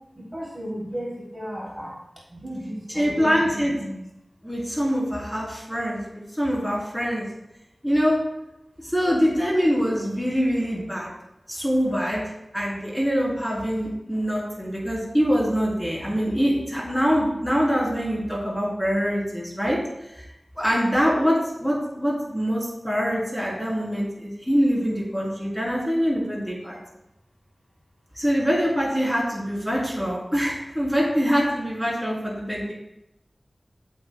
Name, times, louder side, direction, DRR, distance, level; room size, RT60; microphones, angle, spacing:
voice 1, 0.1-2.0 2.3-4.0, equal, 20° right, -5 dB, 3.5 m, -34 dB
voice 2, 2.9-3.7 4.4-7.3 7.8-8.2 8.8-11.1 11.5-12.2 12.5-19.8 20.2-20.3 20.6-26.8 28.2-32.7, equal, 5° left, -4 dB, 3.8 m, -24 dB
15.0 x 8.2 x 2.4 m, 0.88 s
wide cardioid pair, 65°, 0 cm